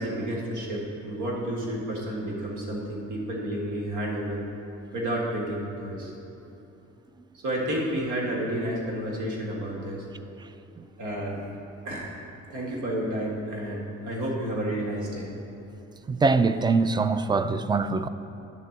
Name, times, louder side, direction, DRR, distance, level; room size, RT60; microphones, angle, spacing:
voice 1, 0.0-6.1 7.4-10.0 11.0-11.4 11.9-12.2 12.5-15.3, right 1 dB, 80° right, 1.9 m, -31 dB
voice 2, 16.1-18.1, right 4 dB, 15° right, 0.3 m, -23 dB
10.5 x 3.8 x 7.2 m
cardioid pair, 90°, 30 cm